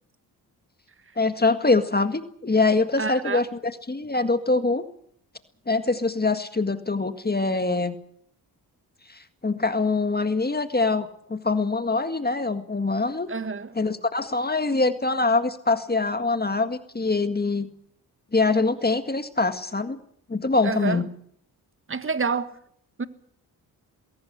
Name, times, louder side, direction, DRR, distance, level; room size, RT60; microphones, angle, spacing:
voice 1, 1.2-4.8 5.7-8.0 9.1-13.3 13.8-17.7 18.3-20.0 20.3-21.1, left 3 dB, 25° left, 1.8 m, -24 dB
voice 2, 3.0-3.4 13.3-13.7 20.6-21.0 21.9-22.5 23.0-23.1, right 4 dB, 30° right, 1.6 m, -28 dB
21.0 x 17.5 x 8.0 m
cardioid pair, 60°, 39 cm